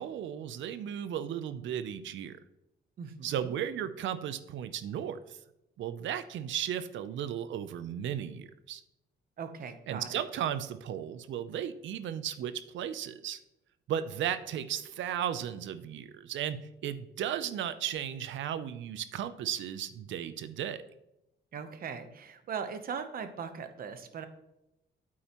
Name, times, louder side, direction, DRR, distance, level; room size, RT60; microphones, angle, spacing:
voice 1, 0.0-2.4 3.2-5.4 5.8-8.8 9.9-13.4 13.9-20.8, right 9 dB, 85° right, 13 dB, 0.6 m, -35 dB
voice 2, 3.0-3.5 9.4-10.2 21.5-24.3, right 6 dB, 50° right, 9 dB, 0.9 m, -39 dB
8.6 x 8.6 x 3.0 m, 0.90 s
wide cardioid pair, 165°, 19 cm